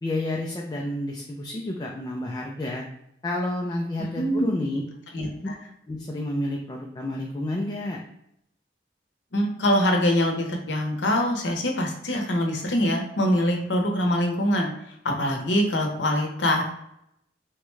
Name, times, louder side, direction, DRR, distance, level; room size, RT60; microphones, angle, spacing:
voice 1, 0.0-2.9 3.2-4.8 5.4-5.5 5.9-8.0, left 1 dB, 20° left, -1 dB, 0.3 m, -30 dB
voice 2, 4.1-4.5 5.1-5.5 9.3-16.6, left 1 dB, 85° left, 2 dB, 0.7 m, -24 dB
3.6 x 2.1 x 3.1 m, 0.76 s
head